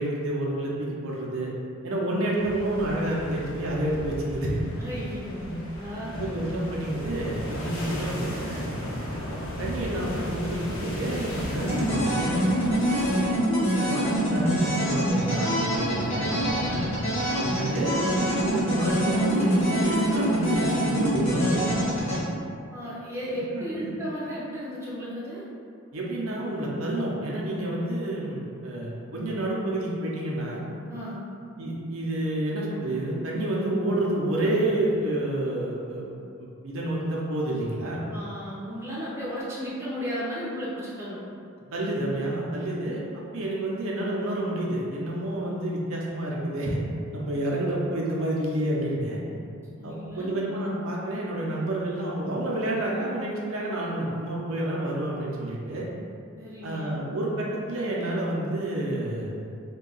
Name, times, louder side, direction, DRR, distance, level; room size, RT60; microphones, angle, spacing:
voice 1, 0.0-1.5 1.8-4.6 5.4-5.5 6.1-8.8 9.3-12.2 13.8-16.3 17.3-22.2 23.3-23.9 25.9-30.6 31.6-36.1 36.4-38.1 41.7-46.8 47.1-49.2 49.8-55.9 56.6-59.4, right 1 dB, 75° right, -4 dB, 0.6 m, -29 dB
sound 1, 2.4-13.2, equal, 85° left, 0.7 m, -36 dB
voice 2, 4.8-6.2 12.7-13.1 15.0-17.0 22.7-25.4 30.9-31.2 38.1-41.2 47.3-47.6 49.8-50.4 56.4-57.0, equal, 10° right, -8 dB, 0.5 m, -35 dB
sound 2, 11.6-22.2, equal, 30° left, 0.8 m, -25 dB
2.7 x 2.3 x 3.8 m, 2.4 s
head